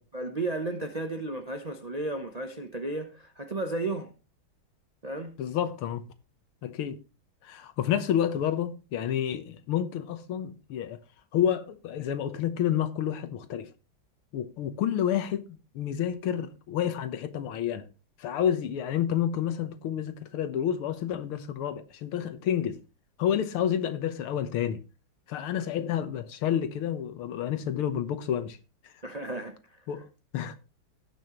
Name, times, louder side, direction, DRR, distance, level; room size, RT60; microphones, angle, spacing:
voice 1, 0.1-4.1 5.0-5.3 29.0-29.6, right 2 dB, 50° right, 0.4 m, -33 dB
voice 2, 5.4-6.0 6.6-7.0 7.4-11.0 11.3-13.7 14.3-15.5 15.7-17.9 18.2-22.8 23.2-24.8 25.3-28.6 28.8-28.9 29.9-30.1 30.3-30.6, left 9 dB, 85° left, 2.0 m, -29 dB
18.0 x 6.3 x 3.1 m
omnidirectional pair, 2.3 m